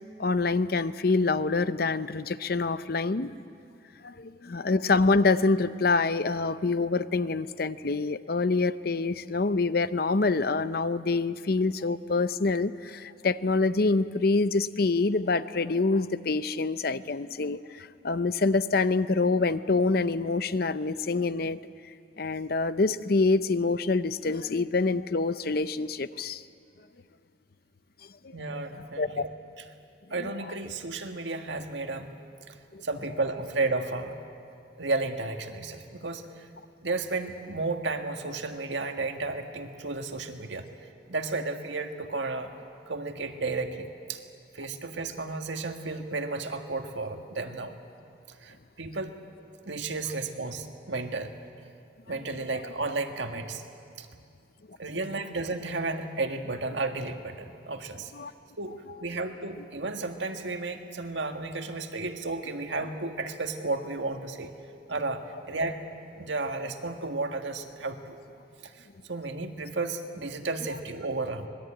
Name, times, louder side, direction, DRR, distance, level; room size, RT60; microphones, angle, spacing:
voice 1, 0.2-3.3 4.0-21.6 22.2-26.4 28.2-28.3 29.0-29.2 30.2-30.3 32.7-32.8 58.1-58.3, left 3 dB, 50° left, 14 dB, 0.6 m, -26 dB
voice 2, 28.3-29.3 30.1-32.1 32.5-32.6 32.8-34.2 34.8-36.5 36.8-40.7 41.1-42.5 42.9-44.2 44.5-47.8 48.4-49.2 49.7-51.3 52.1-53.6 54.0-54.1 54.8-58.1 58.6-64.5 64.9-65.8 66.1-68.2 68.6-71.5, right 3 dB, 75° right, 5 dB, 1.8 m, -33 dB
25.5 x 20.5 x 8.9 m, 2.5 s
head